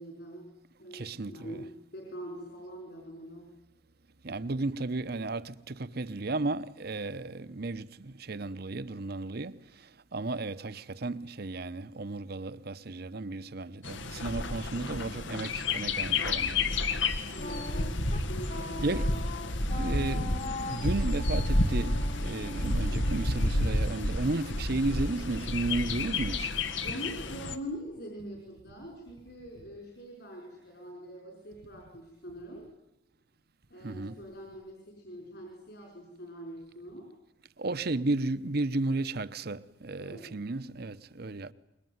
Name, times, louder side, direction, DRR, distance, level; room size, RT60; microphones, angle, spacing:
voice 1, 0.0-3.5 17.3-19.0 26.8-32.7 33.7-37.1 40.0-40.3, equal, 60° left, 5.3 m, -44 dB
voice 2, 0.9-1.6 4.2-7.9 8.3-9.5 10.1-16.7 18.8-19.1 19.8-26.5 33.8-34.1 37.6-41.5, right 2 dB, 55° right, 0.9 m, -33 dB
Bird, 13.8-27.5, left 2 dB, 90° left, 1.7 m, -30 dB
Wind instrument woodwind instrument, 17.4-24.3, left 3 dB, 45° left, 1.7 m, -42 dB
25.0 x 21.5 x 9.5 m
head